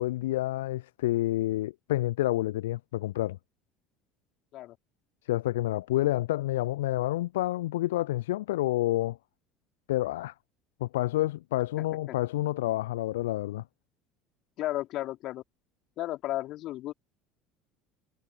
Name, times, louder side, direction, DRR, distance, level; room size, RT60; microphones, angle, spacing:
voice 1, 0.0-3.4 5.3-9.2 9.9-10.3 10.8-13.6, left 16 dB, 70° left, 0.5 m, -29 dB
voice 2, 14.6-15.4 16.0-16.9, left 15 dB, 50° left, 4.8 m, -33 dB
figure-of-eight pair, 65°, 0 cm